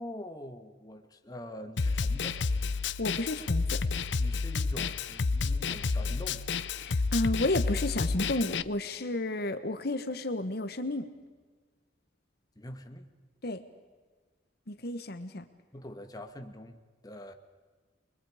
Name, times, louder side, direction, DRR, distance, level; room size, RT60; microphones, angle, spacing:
voice 1, 0.0-2.4 4.2-6.5 12.5-13.1 15.7-17.3, left 1 dB, 20° left, 6 dB, 1.6 m, -44 dB
Snare drum, 1.8-8.6, left 4 dB, 85° left, 0.7 m, -30 dB
voice 2, 3.0-3.8 6.8-11.1 13.4-13.6 14.7-15.4, left 2 dB, 60° left, 9 dB, 1.2 m, -32 dB
29.5 x 22.5 x 5.0 m, 1.4 s
head